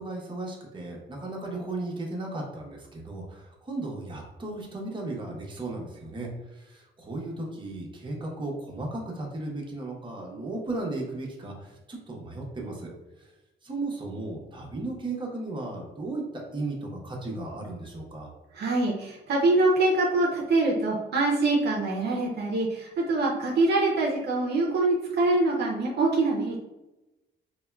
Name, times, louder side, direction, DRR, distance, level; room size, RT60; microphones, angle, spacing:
voice 1, 0.0-6.3 6.6-12.9 13.6-16.2 16.5-18.3, right 2 dB, 25° right, -1 dB, 0.8 m, -35 dB
voice 2, 18.5-26.6, right 2 dB, 55° right, -2 dB, 0.5 m, -24 dB
3.5 x 2.2 x 2.2 m, 1.0 s
cardioid pair, 90°, 20 cm